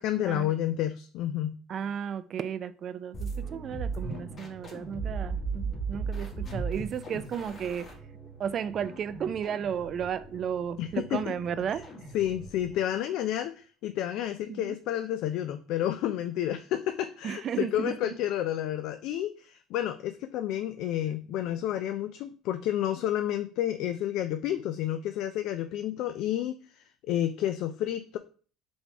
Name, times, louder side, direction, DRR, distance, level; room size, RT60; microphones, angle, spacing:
voice 1, 0.0-1.6 10.8-11.2 11.7-11.8 12.1-28.2, left 12 dB, 70° left, 0.3 m, -30 dB
voice 2, 1.7-7.9 8.4-11.8 14.5-14.8 17.2-18.2, right 8 dB, 50° right, 0.3 m, -34 dB
sound 1, 3.1-12.8, right 4 dB, 45° left, 1.5 m, -37 dB
4.1 x 3.3 x 3.4 m
supercardioid pair, 80°, 0 cm